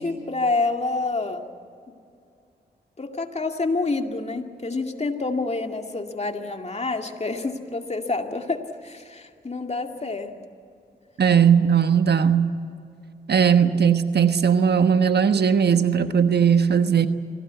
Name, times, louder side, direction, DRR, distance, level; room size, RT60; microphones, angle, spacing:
voice 1, 0.0-1.4 1.9-2.0 3.0-10.3, left 3 dB, 35° left, 4 dB, 2.4 m, -28 dB
voice 2, 11.2-12.5 13.3-17.1, right 7 dB, 65° right, 9 dB, 1.3 m, -18 dB
25.0 x 17.5 x 8.3 m, 2.5 s
cardioid pair, 45°, 18 cm